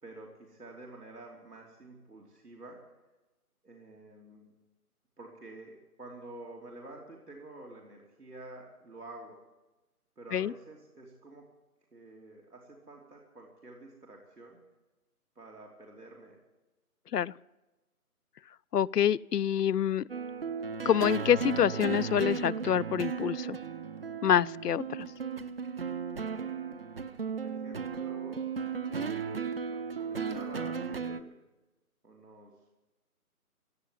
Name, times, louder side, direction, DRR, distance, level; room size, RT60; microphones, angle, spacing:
voice 1, 0.0-2.8 3.6-4.5 5.2-9.4 10.2-11.4 11.9-14.6 15.4-16.4 27.4-28.5 28.9-31.3 32.0-32.7, right 2 dB, 85° right, -2 dB, 3.5 m, -49 dB
voice 2, 18.7-20.0 20.9-23.6 24.2-25.1, left 9 dB, 85° left, 20 dB, 0.5 m, -26 dB
sound 1, 20.1-31.2, right 6 dB, 40° right, 0.7 m, -35 dB
16.5 x 8.7 x 9.5 m, 1.1 s
figure-of-eight pair, 150°, 46 cm